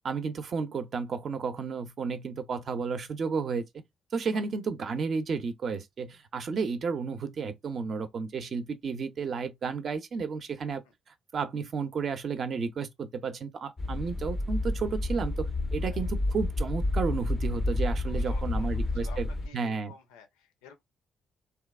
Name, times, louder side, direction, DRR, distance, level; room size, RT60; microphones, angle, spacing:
voice 1, 0.0-3.6 4.1-10.8 11.3-19.3 19.5-19.9, right 5 dB, 55° right, 0.5 m, -32 dB
sound 1, 13.8-19.5, left 2 dB, 25° left, 0.4 m, -30 dB
voice 2, 18.1-20.8, left 6 dB, 80° left, 0.5 m, -52 dB
3.0 x 2.2 x 2.3 m
hypercardioid pair, 40°, 0 cm